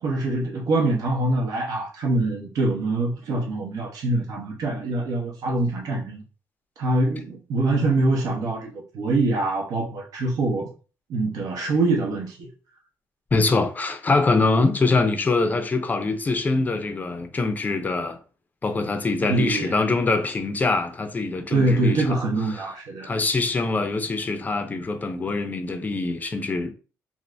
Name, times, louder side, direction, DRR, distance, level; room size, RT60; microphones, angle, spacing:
voice 1, 0.0-6.2 6.8-10.7 11.1-12.5 19.2-19.8 21.5-23.1, right 2 dB, 75° right, 0.8 m, -24 dB
voice 2, 13.3-18.2 18.6-22.2 22.5-22.7 23.0-26.7, left 3 dB, 25° left, 0.5 m, -24 dB
2.6 x 2.5 x 3.3 m
cardioid pair, 100°, 6 cm